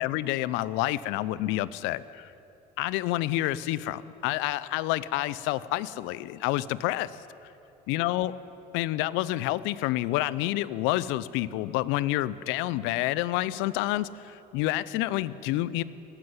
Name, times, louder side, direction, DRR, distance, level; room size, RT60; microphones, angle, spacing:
voice 1, 0.0-2.3 2.8-7.1 7.9-8.3 8.7-15.8, left 16 dB, 70° left, 18 dB, 0.7 m, -28 dB
19.0 x 15.5 x 9.8 m, 2.9 s
hypercardioid pair, 60°, 20 cm